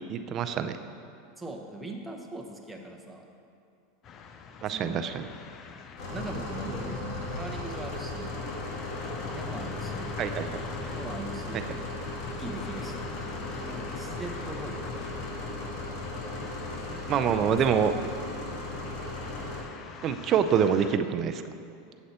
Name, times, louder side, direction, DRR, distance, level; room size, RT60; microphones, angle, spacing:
voice 1, 0.1-0.8 4.6-5.2 10.2-10.6 11.5-11.8 17.1-17.9 20.0-21.4, right 8 dB, 40° right, 9 dB, 0.4 m, -26 dB
voice 2, 1.4-3.2 4.7-5.0 6.1-8.4 9.3-10.2 10.9-11.6 12.4-13.1 13.5-15.0 16.9-18.0, right 2 dB, 5° right, 1 dB, 0.9 m, -41 dB
sound 1, 4.0-21.0, left 6 dB, 35° left, 0.5 m, -44 dB
sound 2, 6.0-19.6, left 2 dB, 60° left, 1.7 m, -36 dB
7.9 x 7.7 x 4.2 m, 2.5 s
supercardioid pair, 120°, 0 cm